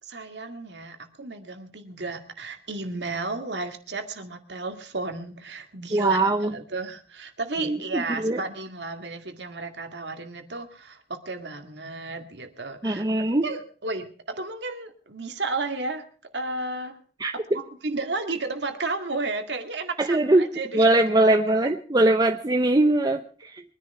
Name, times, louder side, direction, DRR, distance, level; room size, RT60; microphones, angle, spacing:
voice 1, 0.0-16.1 16.3-17.0 17.3-20.9, right 3 dB, 75° right, 6 dB, 2.1 m, -33 dB
voice 2, 5.9-6.5 7.6-8.4 12.8-13.5 17.2-17.6 20.0-20.5 20.7-23.6, right 2 dB, 25° right, 5 dB, 0.8 m, -21 dB
23.0 x 10.5 x 4.7 m, 0.41 s
head